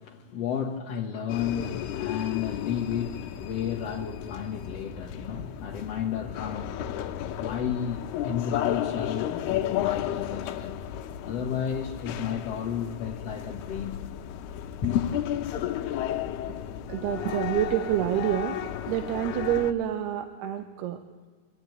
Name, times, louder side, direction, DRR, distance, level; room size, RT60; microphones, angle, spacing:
voice 1, 0.0-6.8 7.4-10.8 11.2-14.0 14.8-15.1, left 8 dB, 55° left, 2.0 m, -32 dB
sound 1, 1.3-19.7, left 11 dB, 80° left, 2.9 m, -33 dB
voice 2, 16.9-18.6 18.9-21.0, right 12 dB, 80° right, 3.0 m, -27 dB
27.0 x 13.5 x 9.5 m
omnidirectional pair, 4.7 m